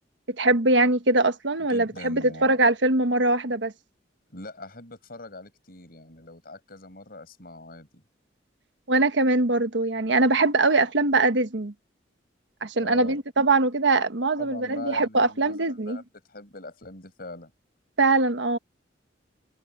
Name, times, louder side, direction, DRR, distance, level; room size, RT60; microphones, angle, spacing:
voice 1, 0.4-3.7 8.9-11.7 12.6-16.0 18.0-18.6, right 2 dB, 80° right, 1.3 m, -22 dB
voice 2, 1.7-2.6 4.3-8.0 12.8-13.2 14.4-17.5, left 2 dB, 55° left, 6.8 m, -42 dB
head